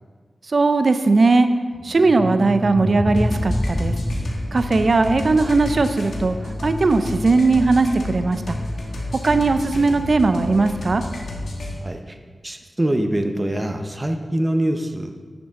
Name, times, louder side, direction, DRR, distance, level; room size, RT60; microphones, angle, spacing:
voice 1, 0.5-1.5 1.8-3.9 4.5-8.6 9.2-11.0, right 3 dB, 60° right, 10 dB, 0.5 m, -18 dB
sound 1, 1.8-6.9, left 1 dB, 15° left, 0.3 m, -28 dB
sound 2, 3.1-11.8, left 1 dB, 85° left, 1.4 m, -30 dB
voice 2, 11.8-12.2 12.4-15.1, right 1 dB, 25° right, 5 dB, 0.9 m, -24 dB
10.0 x 6.2 x 3.7 m, 1.6 s
cardioid pair, 45°, 0 cm